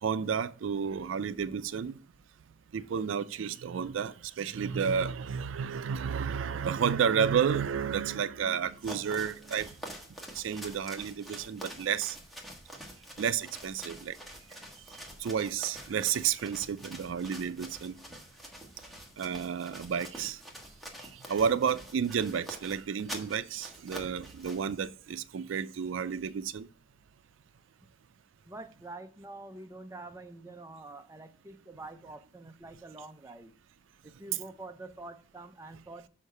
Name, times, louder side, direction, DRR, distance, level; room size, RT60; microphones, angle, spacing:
voice 1, 0.0-2.0 2.7-9.8 10.3-12.2 13.2-14.2 15.2-18.0 19.2-20.4 21.0-26.7 34.3-34.4, right 7 dB, 75° right, 0.4 m, -31 dB
sound 1, 8.7-24.7, equal, ahead, 1.4 m, -47 dB
voice 2, 28.4-33.5 34.0-36.1, right 2 dB, 15° right, 0.5 m, -46 dB
6.5 x 5.6 x 5.4 m
head